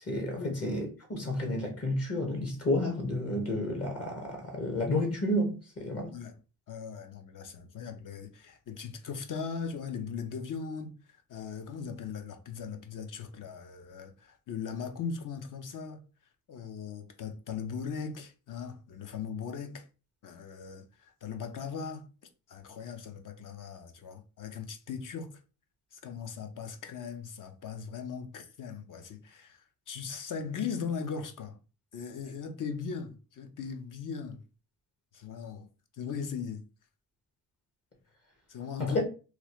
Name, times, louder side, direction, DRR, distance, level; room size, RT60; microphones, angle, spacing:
voice 1, 0.1-6.1 38.8-39.0, left 1 dB, 40° left, 1.1 m, -31 dB
voice 2, 6.7-10.9 11.3-16.0 16.5-19.9 20.2-22.1 22.5-25.3 25.9-31.6 31.9-34.4 35.1-35.7 35.9-36.6 38.5-39.0, left 6 dB, 60° left, 0.7 m, -39 dB
3.0 x 2.4 x 2.9 m
cardioid pair, 85°, 37 cm